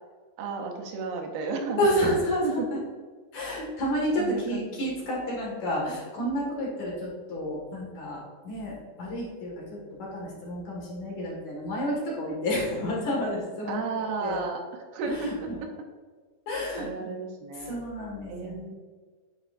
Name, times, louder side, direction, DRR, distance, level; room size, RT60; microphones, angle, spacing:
voice 1, 0.4-1.9 2.4-2.7 4.2-4.9 13.7-15.8 16.7-17.8 18.3-18.7, right 4 dB, 80° right, 2 dB, 2.5 m, -33 dB
voice 2, 1.8-2.4 3.3-9.5 10.0-13.8 14.2-14.4 15.1-15.2 15.5-15.6 16.5-16.9 17.7-18.7, equal, 60° left, -5 dB, 3.1 m, -30 dB
9.7 x 4.5 x 2.5 m, 1.5 s
omnidirectional pair, 4.2 m